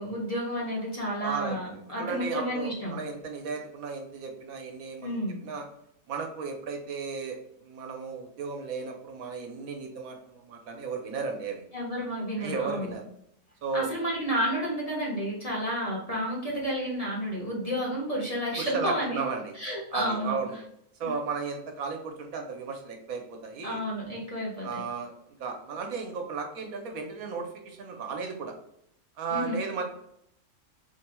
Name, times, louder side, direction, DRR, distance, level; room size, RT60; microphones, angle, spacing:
voice 1, 0.0-3.0 5.0-5.3 11.7-12.9 13.7-19.2 19.5-20.4 21.0-21.1 23.6-24.8 29.3-29.5, equal, 25° left, -5 dB, 1.1 m, -31 dB
voice 2, 1.2-5.7 6.1-11.6 12.4-13.1 13.6-13.9 18.6-19.5 19.9-20.6 21.0-23.8 24.6-25.1 25.4-28.5 29.2-29.8, right 5 dB, 75° right, 3 dB, 1.2 m, -35 dB
4.3 x 3.2 x 2.2 m, 0.75 s
omnidirectional pair, 1.5 m